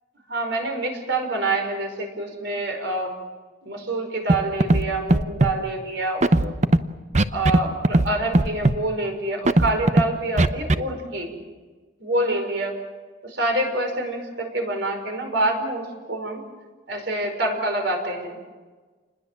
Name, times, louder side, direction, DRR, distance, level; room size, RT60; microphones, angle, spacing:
voice 1, 0.3-3.1 3.6-6.5 7.3-11.4 12.0-12.7 13.2-16.4 16.9-18.4, right 2 dB, 60° right, 4 dB, 5.3 m, -26 dB
Scratching (performance technique), 4.3-4.4 4.6-4.8 5.1-5.5 6.2-6.8 7.1-7.6 7.8-8.1 8.3-8.8 9.5-10.0 10.4-10.8, right 1 dB, 35° right, 0.8 m, -17 dB
28.5 x 21.0 x 7.5 m, 1.4 s
head